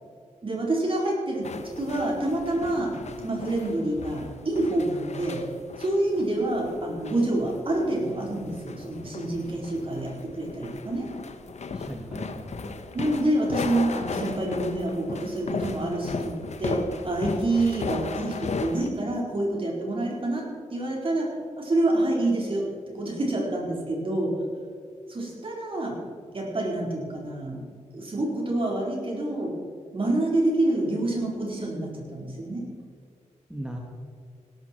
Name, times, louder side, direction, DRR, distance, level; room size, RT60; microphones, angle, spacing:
voice 1, 0.4-1.5 1.8-5.4 5.8-11.1 12.9-20.4 20.7-21.3 21.6-22.7 22.9-24.3 25.1-26.0 26.3-27.6 27.9-29.5 29.9-32.7, right 1 dB, 45° right, -1 dB, 4.4 m, -27 dB
sound 1, 1.4-18.9, left 4 dB, 60° left, 1.1 m, -36 dB
voice 2, 11.7-12.8 33.5-33.8, right 1 dB, 5° right, 0 dB, 1.8 m, -37 dB
16.5 x 13.0 x 4.6 m, 2.1 s
wide cardioid pair, 90°, 13 cm